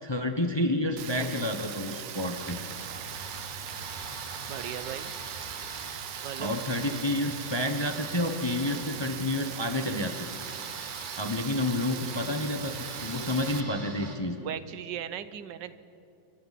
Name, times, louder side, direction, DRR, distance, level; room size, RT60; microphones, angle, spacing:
voice 1, 0.0-2.6 6.4-10.3 11.2-14.4, left 1 dB, 20° left, 5 dB, 0.7 m, -29 dB
Rain, 1.0-13.6, right 10 dB, 60° right, 1.0 m, -40 dB
sound 1, 2.3-14.2, right 3 dB, 30° right, 1.4 m, -43 dB
voice 2, 4.5-5.1 6.2-6.5 14.4-15.7, right 10 dB, 80° right, 13 dB, 1.4 m, -37 dB
27.0 x 24.0 x 4.1 m, 2.7 s
omnidirectional pair, 1.9 m